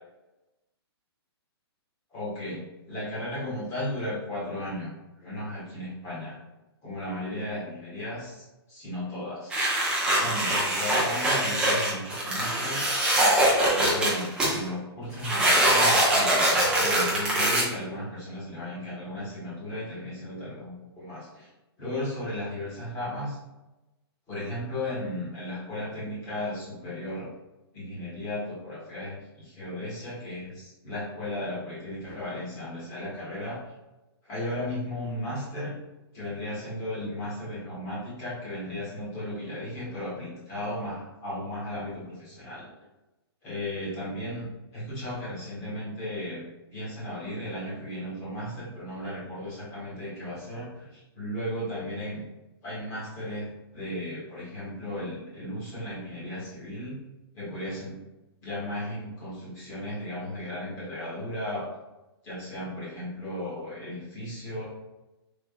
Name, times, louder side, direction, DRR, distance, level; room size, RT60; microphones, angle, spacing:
voice 1, 2.1-4.9 5.2-6.4 6.8-9.6 10.1-12.9 13.7-21.5 21.8-23.4 24.3-27.3 27.7-33.6 34.2-35.7 36.1-42.7 43.4-44.5 44.7-46.4 46.7-52.2 52.6-57.0 57.3-58.0 58.4-61.7 62.2-64.7, left 1 dB, 20° left, -8 dB, 1.2 m, -35 dB
sound 1, 9.5-14.6 15.2-17.6, right 1 dB, 5° right, 0.5 m, -23 dB
3.4 x 2.9 x 2.3 m, 1.0 s
hypercardioid pair, 160°, 14 cm